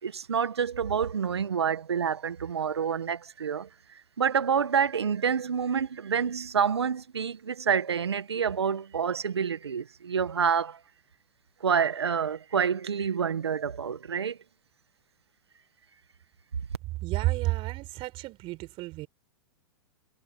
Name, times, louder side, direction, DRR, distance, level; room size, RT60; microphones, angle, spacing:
voice 1, 0.0-10.8 11.6-14.4, right 7 dB, 85° right, 1.8 m, -28 dB
voice 2, 17.0-19.1, right 19 dB, 40° right, 4.5 m, -30 dB
hypercardioid pair, 100°, 13 cm